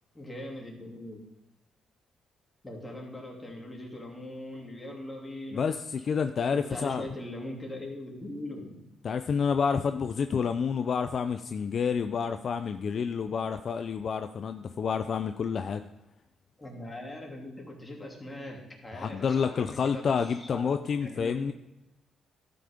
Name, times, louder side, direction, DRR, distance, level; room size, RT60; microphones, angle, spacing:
voice 1, 0.1-1.2 2.6-5.7 6.5-8.7 16.6-21.5, left 1 dB, 15° left, -1 dB, 2.8 m, -41 dB
voice 2, 5.5-7.0 9.0-15.8 18.9-21.5, left 6 dB, 50° left, 9 dB, 0.4 m, -29 dB
12.5 x 5.8 x 5.0 m, 0.96 s
cardioid pair, 90°, 0 cm